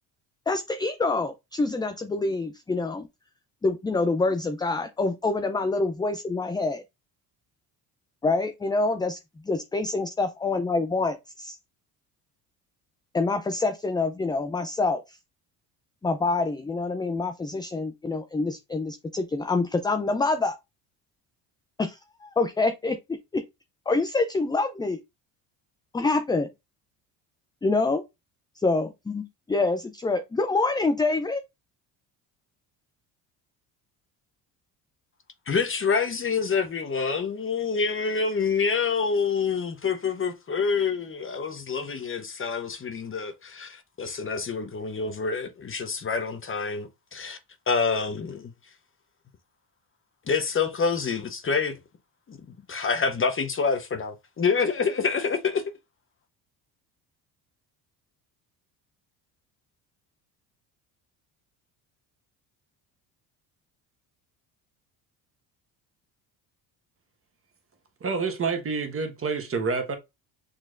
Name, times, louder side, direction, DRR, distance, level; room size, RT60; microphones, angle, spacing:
voice 1, 0.5-3.1 3.6-6.8 8.2-9.2 9.4-11.6 13.1-15.2 16.0-20.6 21.8-23.4 23.9-25.0 25.9-26.5 27.6-28.0 28.6-31.4, left 3 dB, 10° left, 0.4 m, -26 dB
voice 2, 35.5-47.4 47.7-48.5 50.3-51.8 52.3-52.4 52.7-55.6, left 5 dB, 30° left, 0.9 m, -27 dB
voice 3, 68.0-70.0, right 4 dB, 30° right, 1.4 m, -28 dB
6.3 x 3.1 x 2.5 m
supercardioid pair, 85°, 42 cm